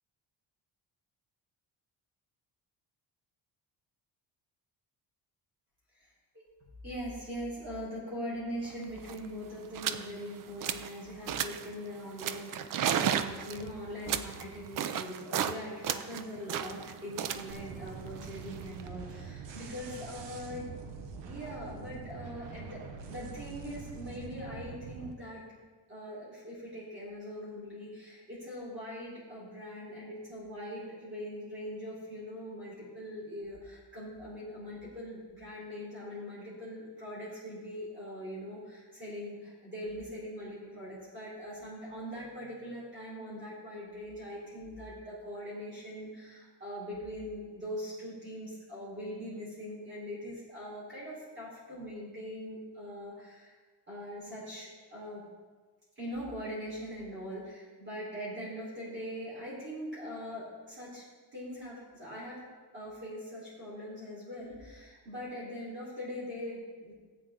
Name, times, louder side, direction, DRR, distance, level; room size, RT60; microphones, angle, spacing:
voice 1, 6.8-20.7 21.2-25.4 25.9-53.5 53.9-55.2 56.0-61.1 61.3-62.4 62.7-66.9, equal, 25° right, -8 dB, 4.1 m, -42 dB
sound 1, 8.7-8.8 9.0-9.3 9.7-10.1 10.4-10.9 11.3-11.7 12.2-15.6 15.8-18.9, right 9 dB, 50° right, 0.5 m, -34 dB
sound 2, 17.5-25.1, right 5 dB, 75° right, 1.1 m, -45 dB
15.0 x 8.6 x 3.8 m, 1.4 s
cardioid pair, 165°, 43 cm